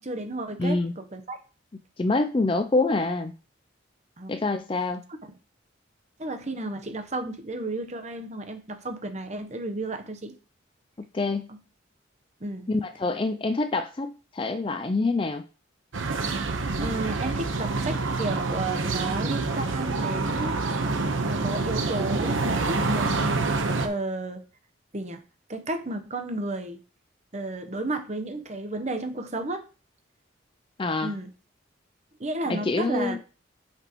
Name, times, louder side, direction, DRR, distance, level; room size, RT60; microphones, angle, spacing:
voice 1, 0.0-1.4 4.2-4.3 6.2-10.4 11.5-11.6 12.4-12.7 16.8-20.6 21.3-23.3 23.8-24.4 24.9-25.2 25.5-26.8 27.3-29.6 31.0-31.3 32.2-33.2, right 2 dB, 35° right, 7 dB, 0.9 m, -32 dB
voice 2, 0.6-0.9 2.0-3.3 4.3-5.0 11.0-11.5 12.7-15.4 30.8-31.1 32.5-33.2, left 3 dB, 25° left, 8 dB, 0.4 m, -26 dB
sound 1, 15.9-23.9, right 3 dB, 85° right, 1.0 m, -27 dB
8.0 x 6.0 x 3.0 m, 0.36 s
head